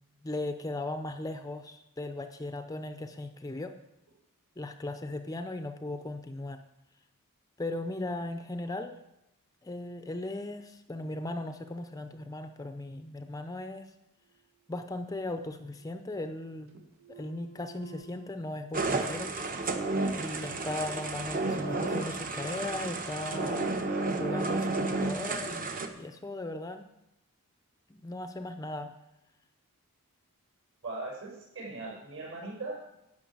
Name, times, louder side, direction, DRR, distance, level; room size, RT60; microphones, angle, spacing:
voice 1, 0.2-3.7 4.6-6.6 7.6-9.0 9.6-13.9 14.7-16.7 17.1-19.3 20.1-23.7 24.2-26.8 27.9-28.9, left 2 dB, 15° left, 8 dB, 0.6 m, -37 dB
sound 1, 14.2-15.2 15.5-16.4 16.7-18.3, right 9 dB, 85° right, 1.7 m, -54 dB
sound 2, 18.7-25.9, right 3 dB, 40° right, 1.0 m, -32 dB
voice 2, 30.8-32.8, right 2 dB, 60° right, -2 dB, 6.0 m, -39 dB
11.5 x 6.4 x 8.6 m, 0.87 s
head